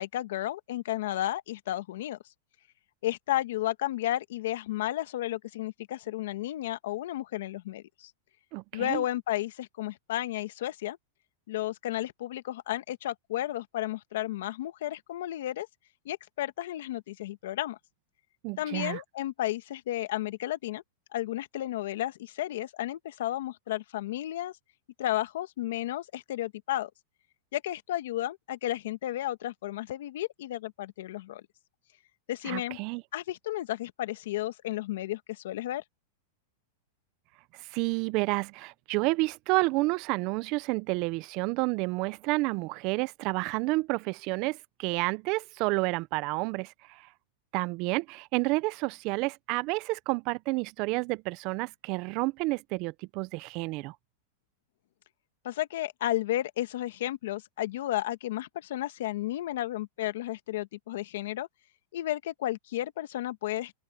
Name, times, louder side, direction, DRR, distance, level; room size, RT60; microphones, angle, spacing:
voice 1, 0.0-2.2 3.0-8.1 8.7-11.0 11.5-15.7 16.0-17.8 18.6-20.8 21.1-24.6 25.0-26.9 27.5-31.4 32.3-32.8 33.1-35.8 55.4-61.5 61.9-63.7, left 14 dB, 65° left, 1.3 m, -33 dB
voice 2, 8.5-9.0 18.4-19.0 32.4-33.0 37.5-47.1 47.5-54.0, right 24 dB, 35° right, 0.4 m, -30 dB
supercardioid pair, 165°, 0 cm